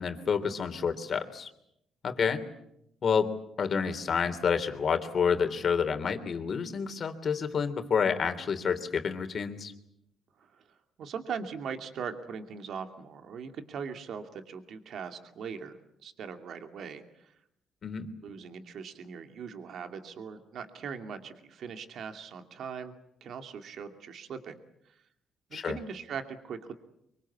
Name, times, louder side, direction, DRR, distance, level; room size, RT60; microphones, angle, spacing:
voice 1, 0.0-1.5 2.0-2.4 3.0-3.3 3.6-9.7 17.8-18.1 25.5-25.8, left 6 dB, 50° left, 8 dB, 3.2 m, -29 dB
voice 2, 11.0-17.3 18.2-22.9 23.2-24.6 24.9-25.0 25.5-26.7, right 6 dB, 65° right, 6 dB, 2.5 m, -40 dB
25.0 x 23.5 x 8.5 m, 0.78 s
cardioid pair, 90°, 0 cm